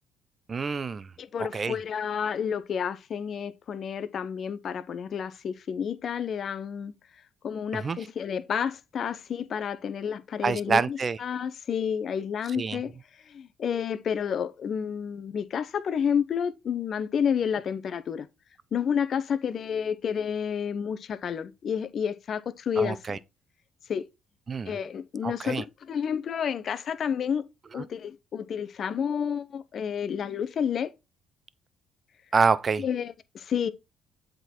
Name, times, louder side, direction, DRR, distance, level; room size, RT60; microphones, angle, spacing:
voice 1, 0.5-1.1 1.5-1.8 7.8-8.0 10.4-11.2 12.5-12.8 22.8-23.2 24.5-24.8 25.2-25.6 27.8-27.9 32.3-32.8, right 5 dB, 35° right, 0.5 m, -26 dB
voice 2, 1.2-6.9 7.4-13.0 13.2-18.3 18.7-23.2 23.9-24.1 24.7-27.5 27.7-30.9 32.8-33.7, left 7 dB, 55° left, 0.8 m, -30 dB
8.0 x 3.9 x 4.3 m
cardioid pair, 90°, 0 cm